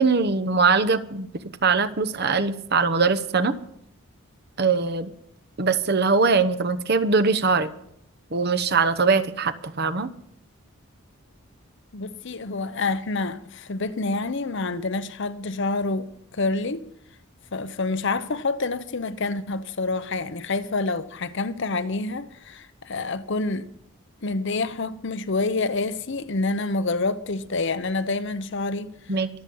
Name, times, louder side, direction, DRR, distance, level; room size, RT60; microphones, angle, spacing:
voice 1, 0.0-3.5 4.6-5.1 5.6-7.7 8.3-10.1 29.1-29.3, right 4 dB, 50° right, 0.9 m, -22 dB
voice 2, 11.9-16.9 17.5-23.7 24.2-28.9, left 3 dB, 55° left, 0.8 m, -27 dB
24.0 x 8.0 x 5.4 m
head